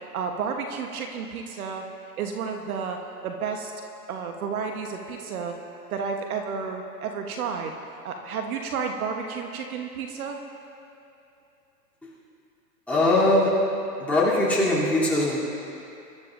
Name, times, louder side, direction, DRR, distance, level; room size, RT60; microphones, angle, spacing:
voice 1, 0.1-1.8 2.2-3.0 3.2-3.7 4.1-5.5 5.9-7.8 8.0-10.4, right 6 dB, 60° right, 3 dB, 1.2 m, -31 dB
voice 2, 12.9-13.5 14.0-15.4, left 1 dB, 5° left, -9 dB, 3.0 m, -21 dB
24.5 x 12.0 x 2.6 m, 2.8 s
hypercardioid pair, 145°, 49 cm